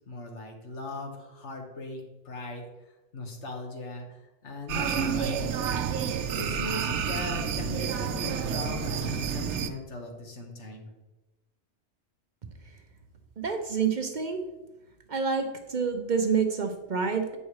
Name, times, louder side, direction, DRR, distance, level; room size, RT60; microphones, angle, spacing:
voice 1, 0.0-2.6 3.1-5.8 6.3-10.9, left 2 dB, 80° left, 3 dB, 1.6 m, -39 dB
sound 1, 4.7-9.7, right 7 dB, 80° right, 0.9 m, -29 dB
voice 2, 13.4-14.4 15.1-17.4, right 5 dB, 45° right, 6 dB, 0.7 m, -28 dB
8.3 x 5.5 x 4.7 m, 1.0 s
omnidirectional pair, 1.2 m